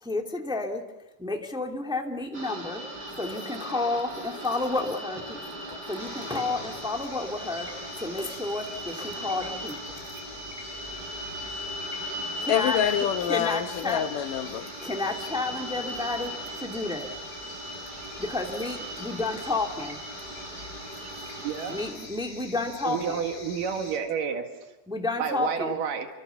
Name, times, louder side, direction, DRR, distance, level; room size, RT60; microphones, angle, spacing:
voice 1, 0.0-0.8 1.2-2.8 3.2-7.7 8.0-10.0 12.4-12.8 13.3-14.0 14.8-17.2 18.2-20.0 21.7-23.2 24.9-25.8, left 3 dB, ahead, 2 dB, 1.8 m, -31 dB
sound 1, 2.3-21.9, equal, 30° right, 6.3 m, -38 dB
sound 2, 6.0-24.0, left 2 dB, 20° left, 6.0 m, -45 dB
voice 2, 12.5-14.7, left 10 dB, 80° left, 9 dB, 2.8 m, -27 dB
voice 3, 21.4-21.8 22.9-24.5 25.2-26.1, right 7 dB, 85° right, 4 dB, 3.5 m, -30 dB
29.0 x 25.0 x 7.0 m, 1.0 s
omnidirectional pair, 3.7 m